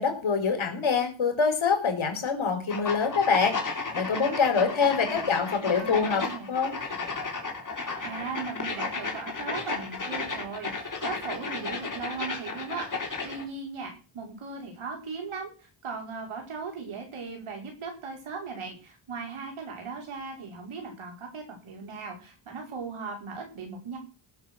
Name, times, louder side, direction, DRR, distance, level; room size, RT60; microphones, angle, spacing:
voice 1, 0.0-6.7, left 5 dB, 75° left, 5 dB, 4.5 m, -25 dB
sound 1, 2.7-13.4, left 4 dB, 40° left, 3.6 m, -34 dB
voice 2, 4.5-6.5 8.0-24.0, right 4 dB, 85° right, 1 dB, 5.6 m, -38 dB
17.5 x 7.2 x 6.4 m, 0.35 s
wide cardioid pair, 95°, 48 cm